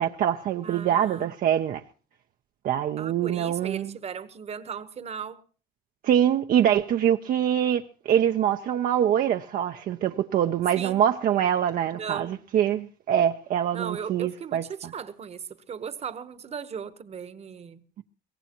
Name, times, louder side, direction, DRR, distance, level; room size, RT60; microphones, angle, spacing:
voice 1, 0.0-1.8 2.6-3.9 6.0-14.6 18.0-18.1, right 10 dB, 60° right, 0.6 m, -24 dB
voice 2, 0.6-1.3 3.0-5.4 10.8-11.0 11.9-12.4 13.7-17.8, right 7 dB, 40° right, 1.1 m, -37 dB
22.5 x 17.0 x 3.0 m
cardioid pair, 110°, 17 cm